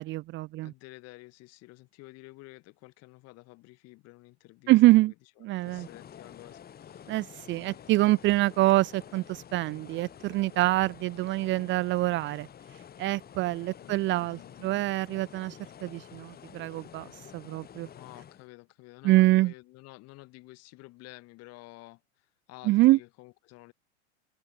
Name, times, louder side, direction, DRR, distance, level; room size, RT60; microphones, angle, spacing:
voice 1, 0.0-0.7 4.7-5.1 5.4-5.9 7.1-12.5 13.0-17.1 17.3-17.9 19.0-19.5 22.6-23.0, right 18 dB, 35° right, 0.7 m, -25 dB
voice 2, 0.6-7.0 7.6-8.1 13.8-14.8 17.9-23.7, left 21 dB, 45° left, 5.4 m, -51 dB
sound 1, 5.5-18.5, left 9 dB, 25° left, 4.3 m, -49 dB
hypercardioid pair, 95°, 34 cm